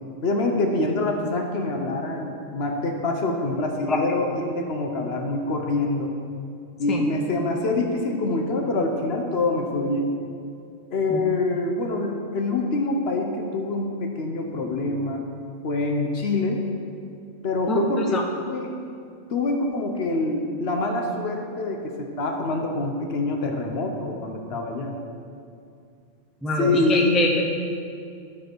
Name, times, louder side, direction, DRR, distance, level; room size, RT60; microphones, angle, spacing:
voice 1, 0.2-6.1 6.8-10.1 10.9-15.2 15.6-16.6 17.4-18.2 18.5-18.7 19.3-25.0 26.6-27.3, left 2 dB, 60° left, 2 dB, 1.0 m, -25 dB
voice 2, 17.7-18.2 26.4-27.5, left 2 dB, ahead, 0 dB, 0.5 m, -25 dB
12.0 x 4.9 x 4.6 m, 2.4 s
omnidirectional pair, 1.2 m